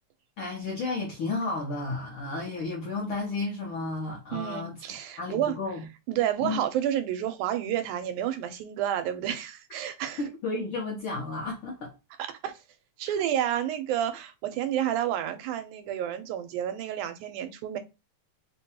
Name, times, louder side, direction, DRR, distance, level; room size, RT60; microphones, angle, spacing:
voice 1, 0.4-4.8 5.2-5.8 6.4-6.6 10.2-11.9 13.1-13.2, left 3 dB, 70° left, 1.2 m, -32 dB
voice 2, 4.3-5.6 6.1-10.2 12.2-12.5 13.0-17.8, right 11 dB, 85° right, 2.1 m, -30 dB
4.7 x 2.2 x 2.8 m
omnidirectional pair, 3.5 m